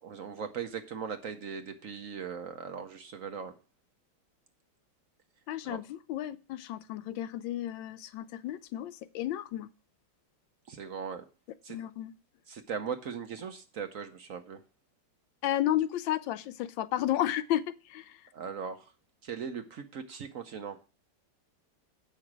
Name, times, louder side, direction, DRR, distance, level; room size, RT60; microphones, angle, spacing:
voice 1, 0.0-3.6 5.6-5.8 10.7-11.2 11.6-11.8 12.5-14.6 18.3-18.9 19.2-20.8, right 6 dB, 55° right, 7 dB, 1.0 m, -39 dB
voice 2, 5.5-9.7 11.7-12.1 15.4-18.2, left 12 dB, 90° left, 14 dB, 1.4 m, -32 dB
8.3 x 5.8 x 6.0 m, 0.35 s
omnidirectional pair, 2.0 m